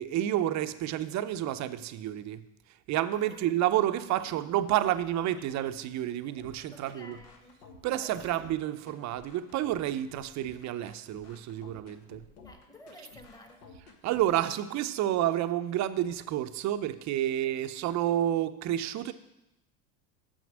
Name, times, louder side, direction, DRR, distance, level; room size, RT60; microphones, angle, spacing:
voice 1, 0.0-2.4 2.9-7.2 7.8-12.2 14.0-19.1, right 12 dB, 40° right, 0.5 m, -30 dB
voice 2, 3.1-3.4 4.2-4.9 5.4-5.5 6.7-7.6 8.0-8.3 12.4-13.7 17.2-17.3, left 1 dB, 10° left, 1.2 m, -52 dB
sound 1, 6.4-14.4, left 4 dB, 85° left, 1.3 m, -53 dB
6.8 x 6.1 x 6.2 m
hypercardioid pair, 95°, 45 cm